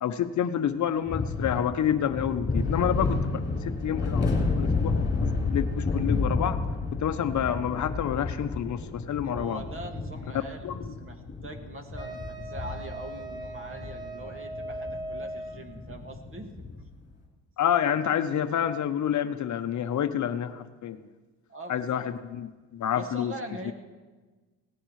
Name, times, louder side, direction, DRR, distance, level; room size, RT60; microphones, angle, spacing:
voice 1, 0.0-4.9 5.2-6.6 7.0-9.6 10.6-10.9 17.6-21.0 21.7-23.3 23.7-23.8, left 9 dB, 50° left, 9 dB, 0.8 m, -28 dB
sound 1, 1.1-16.9, left 3 dB, 25° left, 4.0 m, -31 dB
voice 2, 9.2-16.7 21.5-22.0 22.9-23.7, right 2 dB, 35° right, 4 dB, 2.0 m, -42 dB
Wind instrument woodwind instrument, 12.0-15.8, right 1 dB, 10° right, 1.3 m, -39 dB
18.5 x 14.5 x 3.2 m, 1.3 s
cardioid pair, 90°, 38 cm